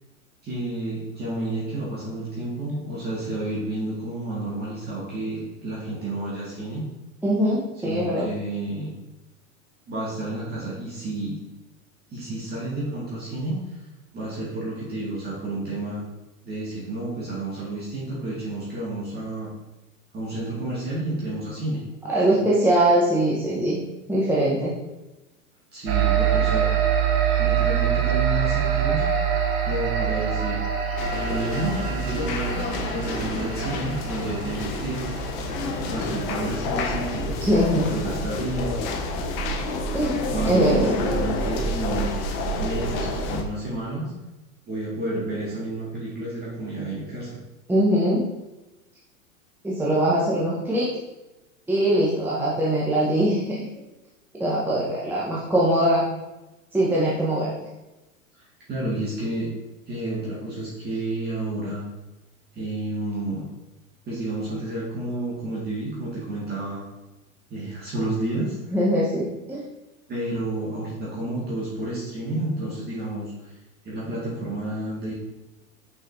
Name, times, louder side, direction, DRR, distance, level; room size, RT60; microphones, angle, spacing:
voice 1, 0.4-6.9 7.8-8.9 9.9-11.4 12.1-13.6 14.1-16.0 16.4-19.5 20.1-21.8 22.3-22.4 25.7-26.7 27.4-29.0 29.7-30.6 31.1-32.6 32.9-35.0 35.6-37.3 37.7-38.8 40.3-44.1 44.7-47.4 58.4-59.5 59.9-61.8 62.5-63.5 64.1-66.8 67.5-68.6 70.1-73.5 73.8-75.1, right 2 dB, 25° right, -6 dB, 1.9 m, -30 dB
voice 2, 7.2-8.3 22.1-23.8 24.1-24.7 37.4-37.9 39.9-40.2 40.4-40.9 47.7-48.3 49.6-50.9 51.7-53.6 54.4-56.1 56.7-57.5 68.7-69.6, right 1 dB, 5° right, -7 dB, 1.0 m, -22 dB
sound 1, 25.9-37.7, right 9 dB, 50° right, 1.0 m, -25 dB
sound 2, 31.0-43.4, left 2 dB, 45° left, 0.9 m, -29 dB
6.3 x 5.8 x 2.7 m, 1.0 s
hypercardioid pair, 100°, 41 cm